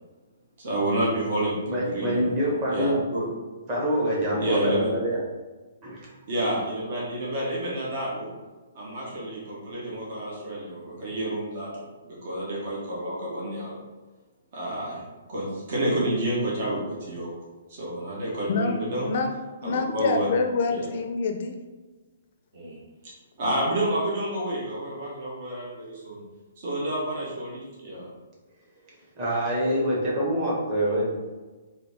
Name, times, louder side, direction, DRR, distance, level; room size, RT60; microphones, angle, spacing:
voice 1, 0.6-3.3 4.4-4.9 6.3-8.3 8.7-11.9 12.2-13.8 14.5-15.0 15.3-17.3 17.7-19.2 19.6-20.3 20.7-20.9 22.5-22.8 23.0-26.2 26.6-28.1, right 1 dB, 50° right, -5 dB, 1.2 m, -29 dB
voice 2, 1.6-3.0 3.7-5.2 5.8-6.1 29.1-31.1, equal, 30° right, -5 dB, 1.5 m, -25 dB
voice 3, 19.6-21.6, left 4 dB, 50° left, 5 dB, 0.5 m, -26 dB
3.9 x 2.7 x 3.5 m, 1.3 s
hypercardioid pair, 155°, 0 cm